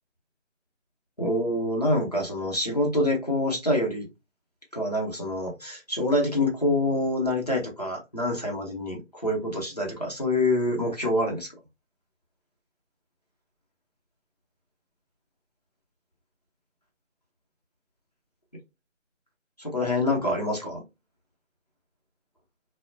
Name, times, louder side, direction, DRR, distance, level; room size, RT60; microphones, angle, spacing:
voice 1, 1.2-4.1 4.7-11.5 19.6-20.8, left 1 dB, 30° left, 0.7 m, -26 dB
2.9 x 2.0 x 2.5 m
figure-of-eight pair, 170°, 38 cm